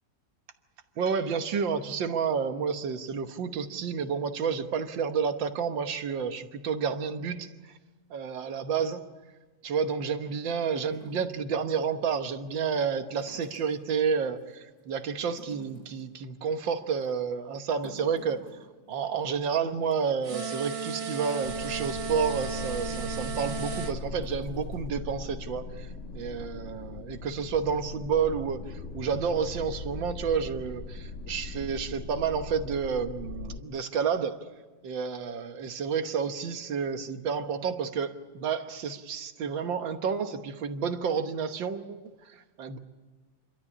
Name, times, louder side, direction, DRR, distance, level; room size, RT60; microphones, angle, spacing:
voice 1, 1.0-7.5 8.1-9.0 9.6-18.5 18.9-34.4 34.8-42.1 42.6-42.8, right 6 dB, 85° right, 8 dB, 1.9 m, -30 dB
sound 1, 10.9-11.9 13.2-13.9 14.4-14.8 15.2-16.1 16.5-16.7 17.0-17.1 17.6-19.1 19.5-19.6 19.8-19.9 20.6-20.7 21.1-22.1 22.5-22.8 23.3-23.4 24.0-24.8, left 1 dB, 75° left, 6.3 m, -52 dB
sound 2, 20.2-24.0, right 5 dB, 40° right, 1.1 m, -35 dB
sound 3, 21.4-33.6, left 3 dB, 40° left, 1.6 m, -39 dB
28.0 x 13.0 x 9.8 m, 1.3 s
omnidirectional pair, 2.0 m